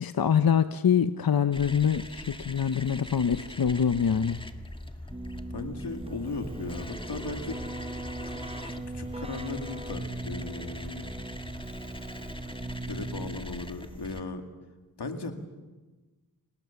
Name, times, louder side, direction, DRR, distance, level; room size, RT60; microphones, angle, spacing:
voice 1, 0.0-4.5, left 7 dB, 60° left, 11 dB, 0.8 m, -25 dB
sound 1, 1.5-14.2, left 1 dB, 15° left, 1.7 m, -41 dB
Keyboard (musical), 5.1-13.8, right 2 dB, 15° right, 0.7 m, -40 dB
voice 2, 5.5-7.6 8.2-11.1 12.7-14.4 15.0-15.3, left 3 dB, 90° left, 6 dB, 2.2 m, -37 dB
26.5 x 19.0 x 7.0 m, 1.2 s
wide cardioid pair, 55°, 39 cm